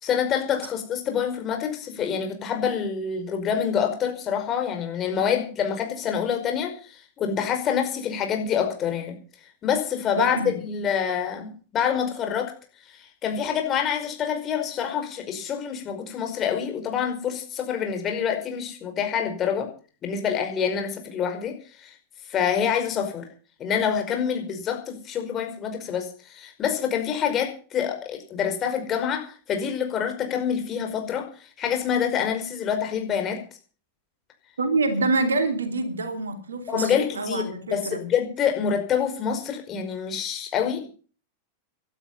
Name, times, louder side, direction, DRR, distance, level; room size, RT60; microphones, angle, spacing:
voice 1, 0.0-9.2 9.6-12.5 13.2-19.7 20.0-21.5 21.8-21.9 22.3-23.3 23.6-31.3 31.6-33.4 36.7-37.4 37.7-40.9, left 8 dB, 30° left, 5.1 m, -26 dB
voice 2, 10.2-10.5 34.6-38.0, right 3 dB, 70° right, 2.9 m, -26 dB
17.0 x 12.5 x 5.6 m
figure-of-eight pair, 90°, 0 cm